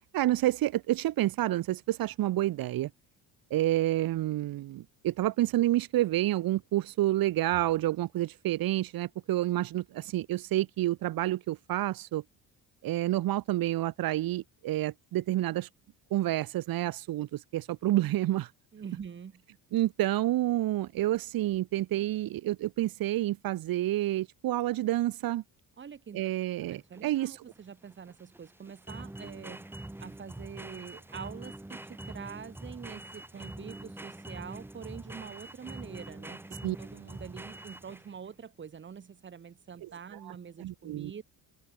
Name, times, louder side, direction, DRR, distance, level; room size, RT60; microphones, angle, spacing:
voice 1, 0.1-2.9 3.5-12.2 12.8-15.7 16.1-18.5 19.7-25.4 26.1-27.4 36.6-36.8 39.8-39.9 40.2-40.3 40.6-41.1, right 15 dB, 70° right, 3.1 m, -29 dB
voice 2, 18.7-19.4 25.8-26.3 26.6-29.7 30.0-41.2, right 7 dB, 30° right, 6.2 m, -45 dB
sound 1, 26.6-38.3, right 1 dB, 5° right, 3.5 m, -44 dB
cardioid pair, 165°, 36 cm